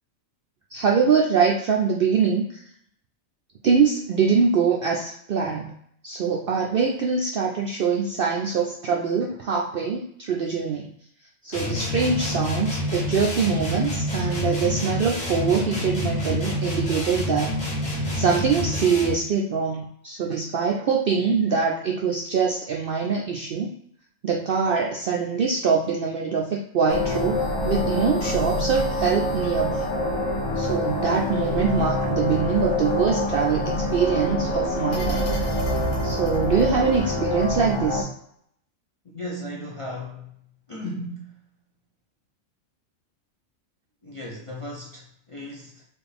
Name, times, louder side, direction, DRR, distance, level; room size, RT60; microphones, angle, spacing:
voice 1, 0.7-2.4 3.6-5.7 6.0-10.9 11.4-17.5 17.9-23.7 24.2-29.9 30.6-35.3 36.0-38.1, right 5 dB, 65° right, -1 dB, 0.5 m, -23 dB
sound 1, 11.5-19.3, left 1 dB, 60° left, 1.6 m, -27 dB
sound 2, 26.9-38.0, left 1 dB, 80° left, 1.3 m, -26 dB
voice 2, 39.1-40.3 40.7-41.4 44.0-45.8, left 1 dB, 45° left, -4 dB, 0.4 m, -36 dB
4.3 x 2.5 x 3.4 m, 0.68 s
omnidirectional pair, 1.4 m